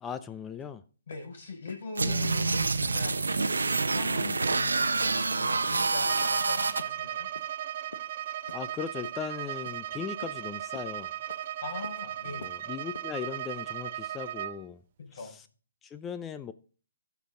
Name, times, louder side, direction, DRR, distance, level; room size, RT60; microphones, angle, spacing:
voice 1, 0.0-0.8 2.0-2.1 8.5-11.1 12.4-14.8 15.1-15.3 15.8-16.5, left 7 dB, 15° left, 0.4 m, -38 dB
sound 1, 0.6-0.7 1.1-1.3 1.7-1.8 2.2-2.4 2.8-3.0 3.4-3.5 3.9-4.1 4.5-4.7 5.1-5.3 5.6-5.8 6.2-6.4 6.8-7.0 7.4-7.5 7.9-8.1 8.5-8.7 9.0-9.2 9.7-9.8 10.2-10.4 10.7-10.9 11.3-11.5 11.8-12.0 12.4-12.6 12.9-13.1, left 4 dB, 75° left, 1.1 m, -46 dB
voice 2, 1.1-7.3 11.6-12.4 15.0-15.4, left 4 dB, 60° left, 5.4 m, -41 dB
sound 2, 2.0-6.8, right 4 dB, 85° right, 0.9 m, -27 dB
Bowed string instrument, 6.1-14.6, right 12 dB, 40° right, 0.5 m, -37 dB
14.5 x 5.1 x 3.8 m
hypercardioid pair, 145°, 0 cm